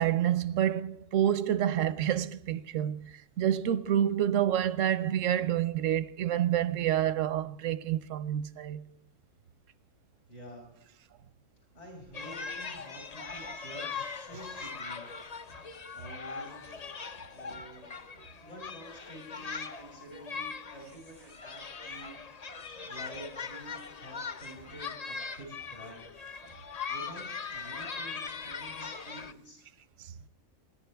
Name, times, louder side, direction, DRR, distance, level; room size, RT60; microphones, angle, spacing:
voice 1, 0.0-8.8 22.8-23.0 30.0-30.1, right 11 dB, 90° right, 1.1 m, -28 dB
voice 2, 10.3-10.7 11.7-15.1 15.5-15.7 15.9-16.6 17.3-17.9 18.4-26.0 26.9-29.6, right 1 dB, 65° left, 6.3 m, -49 dB
sound 1, 12.1-29.3, left 5 dB, 40° left, 0.7 m, -40 dB
27.0 x 10.5 x 3.4 m
omnidirectional pair, 1.3 m